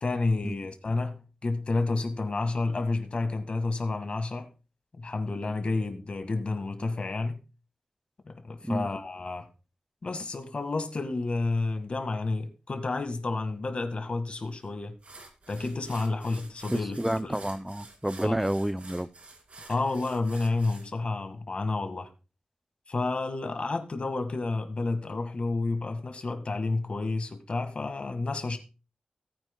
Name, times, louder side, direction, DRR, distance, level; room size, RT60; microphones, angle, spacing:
voice 1, 0.0-4.5 5.0-7.4 8.3-9.5 10.0-15.0 15.5-17.3 18.2-18.3 19.7-22.1 22.9-28.6, left 3 dB, 50° left, 1.7 m, -30 dB
sound 1, 14.5-14.6 15.0-20.9, right 3 dB, 60° right, 2.5 m, -49 dB
voice 2, 16.7-19.1, right 1 dB, 5° right, 0.5 m, -29 dB
18.0 x 9.0 x 2.3 m
wide cardioid pair, 90°, 2 cm